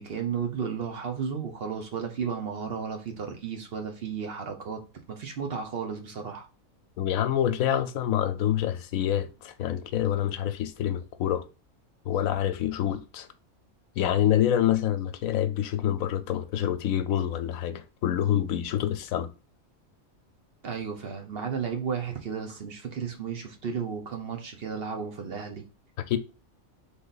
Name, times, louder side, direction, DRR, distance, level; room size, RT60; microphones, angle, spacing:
voice 1, 0.0-4.8 5.1-6.4 20.6-25.6, right 6 dB, 50° right, 0.9 m, -33 dB
voice 2, 7.0-11.4 12.1-13.3 14.0-19.3 26.1-26.2, left 11 dB, 80° left, 1.0 m, -26 dB
3.9 x 3.5 x 3.9 m
omnidirectional pair, 1.5 m